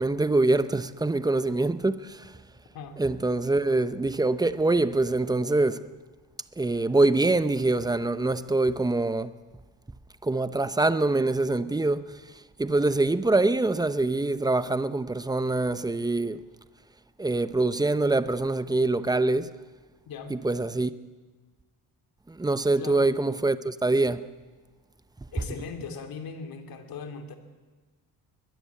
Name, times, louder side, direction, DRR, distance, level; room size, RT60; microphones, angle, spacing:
voice 1, 0.0-2.2 3.0-5.8 6.6-9.3 10.2-12.2 12.6-16.4 17.2-19.5 20.3-20.9 22.3-24.2, right 2 dB, 10° right, 0.8 m, -24 dB
voice 2, 20.1-20.4 22.8-23.1 25.3-27.4, left 5 dB, 65° left, 3.0 m, -39 dB
21.5 x 21.0 x 8.5 m
cardioid pair, 130°, 38 cm